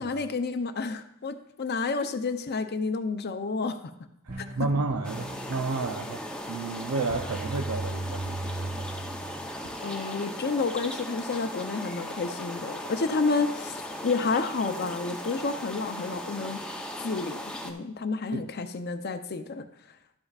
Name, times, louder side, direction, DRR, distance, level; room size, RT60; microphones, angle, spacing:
voice 1, 0.0-3.9 9.8-16.6 17.0-19.7, left 4 dB, 45° left, 8 dB, 0.6 m, -30 dB
voice 2, 4.2-8.9 9.4-9.8 18.3-18.4, right 3 dB, 75° right, 3 dB, 0.6 m, -32 dB
sound 1, 4.3-9.9, right 2 dB, 40° right, 0.7 m, -38 dB
sound 2, 5.0-17.7, equal, 5° left, 0.7 m, -38 dB
12.5 x 8.7 x 2.4 m, 0.80 s
head